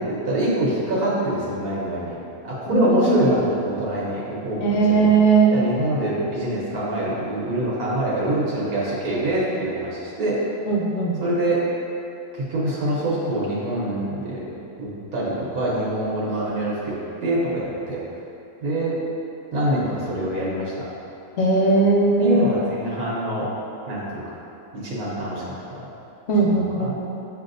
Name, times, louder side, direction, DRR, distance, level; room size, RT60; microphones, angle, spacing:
voice 1, 0.0-2.2 2.4-5.1 5.5-10.4 11.2-11.6 12.3-14.5 14.8-18.0 18.6-19.0 19.5-20.9 22.2-23.5 23.9-24.4 24.7-25.8 26.4-26.9, right 1 dB, 80° right, -6 dB, 1.3 m, -25 dB
voice 2, 2.7-3.2 4.6-5.5 10.7-11.2 21.4-22.4 26.3-27.0, right 3 dB, 65° left, -2 dB, 1.0 m, -18 dB
7.7 x 2.7 x 2.5 m, 2.8 s
omnidirectional pair, 1.5 m